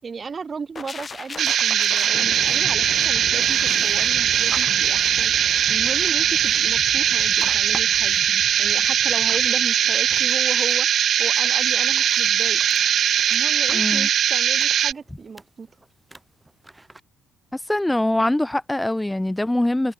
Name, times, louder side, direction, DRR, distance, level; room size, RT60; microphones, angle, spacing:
voice 1, 0.0-5.3 5.7-8.2 8.6-10.9 11.2-12.6 13.3-15.7, right 5 dB, 30° right, 5.9 m, -35 dB
sound 1, 0.8-10.6 10.9-11.1, left 5 dB, 25° left, 6.1 m, -39 dB
sound 2, 1.4-14.9, right 9 dB, 55° right, 2.7 m, -20 dB
sound 3, 3.4-17.0, right 2 dB, 10° right, 6.0 m, -46 dB
voice 2, 13.7-14.1 17.5-19.9, left 1 dB, 5° left, 2.0 m, -23 dB
cardioid pair, 125°, 0 cm